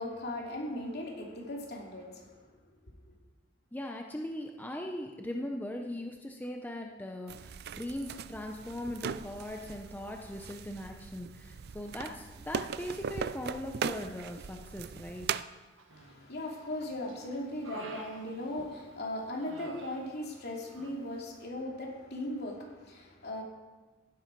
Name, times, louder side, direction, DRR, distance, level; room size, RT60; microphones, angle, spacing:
voice 1, 0.0-2.4 15.9-23.4, left 1 dB, 55° left, -1 dB, 2.9 m, -38 dB
voice 2, 3.7-15.3, left 1 dB, 10° left, 2 dB, 0.8 m, -39 dB
sound 1, 7.3-15.4, right 7 dB, 55° right, 0.4 m, -39 dB
Human voice, 15.8-16.4 16.8-18.9 19.4-20.5 20.7-21.0, right 3 dB, 90° right, 1.6 m, -49 dB
15.5 x 11.0 x 4.7 m, 1.3 s
head